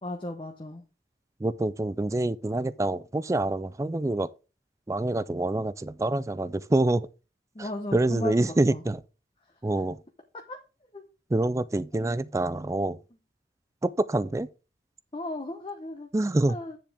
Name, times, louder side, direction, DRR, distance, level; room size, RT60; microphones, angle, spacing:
voice 1, 0.0-0.8 7.5-8.8 10.5-10.6 10.9-11.0 11.9-12.1 15.1-16.1 16.5-16.8, left 1 dB, 30° left, 0.8 m, -36 dB
voice 2, 1.4-4.3 4.9-7.1 7.6-9.0 9.6-10.0 11.3-13.0 13.8-14.5 16.1-16.6, right 2 dB, 15° right, 0.3 m, -26 dB
9.3 x 7.3 x 3.4 m
head